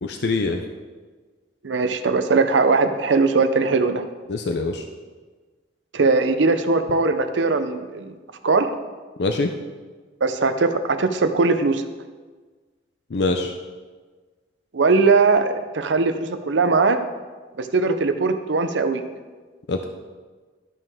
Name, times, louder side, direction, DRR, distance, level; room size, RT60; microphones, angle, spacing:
voice 1, 0.0-0.6 4.3-4.8 9.2-9.5 13.1-13.5 19.7-19.8, left 3 dB, 65° left, 5 dB, 0.5 m, -23 dB
voice 2, 1.6-4.0 5.9-8.1 8.4-8.7 10.2-11.8 14.7-17.0 17.6-19.0, right 4 dB, 85° right, 9 dB, 0.6 m, -20 dB
12.5 x 5.5 x 3.6 m, 1.4 s
head